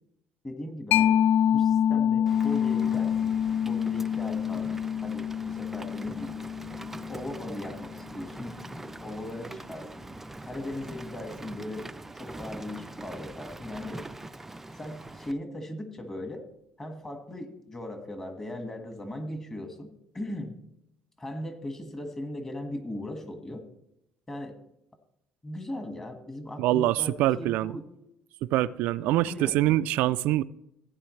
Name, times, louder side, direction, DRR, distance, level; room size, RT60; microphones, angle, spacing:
voice 1, 0.4-1.2 1.5-3.3 3.6-6.4 7.1-8.6 9.0-10.1 10.4-11.9 12.2-14.1 14.7-16.5 16.8-20.6 21.2-23.7 24.3-24.6 25.4-27.8 29.3-29.6, left 1 dB, 20° left, 1.8 m, -38 dB
Mallet percussion, 0.9-8.2, left 9 dB, 70° left, 0.4 m, -26 dB
Rain, 2.3-15.3, right 2 dB, 10° right, 0.4 m, -43 dB
voice 2, 26.6-27.7 28.5-30.4, right 15 dB, 75° right, 0.3 m, -24 dB
16.0 x 9.8 x 3.2 m
cardioid pair, 120°, 3 cm